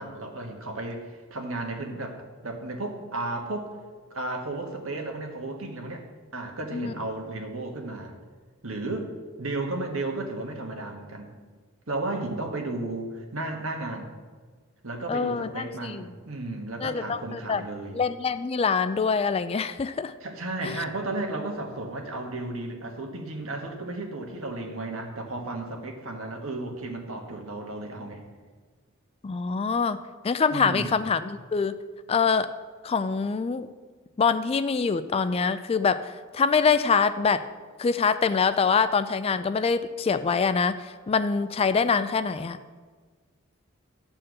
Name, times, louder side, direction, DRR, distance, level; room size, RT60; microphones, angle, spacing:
voice 1, 0.0-3.7 4.1-6.0 6.3-8.2 8.6-11.3 11.9-14.1 14.8-18.0 20.2-28.2 30.5-30.9, right 2 dB, 70° right, 2 dB, 1.5 m, -34 dB
voice 2, 15.1-16.1 16.8-17.6 17.9-20.1 20.6-20.8 29.2-31.7 32.1-32.5 32.8-33.7 34.2-37.5 37.8-42.6, left 5 dB, 30° left, 12 dB, 0.3 m, -25 dB
11.0 x 4.4 x 7.6 m, 1.5 s
head